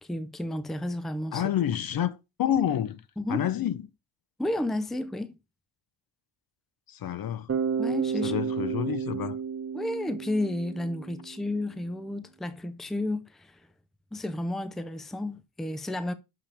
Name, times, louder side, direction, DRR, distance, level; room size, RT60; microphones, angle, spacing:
voice 1, 0.0-1.4 3.2-3.5 4.4-5.4 7.8-8.4 9.7-13.6 14.1-16.1, left 1 dB, ahead, 0.5 m, -32 dB
voice 2, 1.3-3.0 3.3-3.8 6.9-7.5 8.2-9.4, left 10 dB, 50° left, 0.6 m, -28 dB
Bass guitar, 7.5-11.4, right 6 dB, 30° right, 1.9 m, -31 dB
6.9 x 5.7 x 3.3 m
cardioid pair, 100°, 48 cm